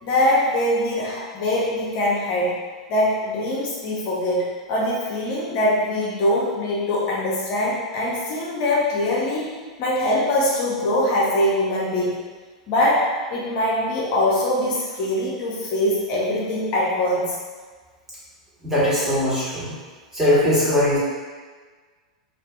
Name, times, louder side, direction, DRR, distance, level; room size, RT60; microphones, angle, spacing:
voice 1, 0.0-2.6 2.9-12.2 12.7-17.4, left 1 dB, 50° left, -5 dB, 0.5 m, -23 dB
voice 2, 18.6-19.7 20.1-21.0, left 1 dB, 15° right, -10 dB, 1.2 m, -20 dB
2.6 x 2.3 x 2.3 m, 1.5 s
hypercardioid pair, 100°, 4 cm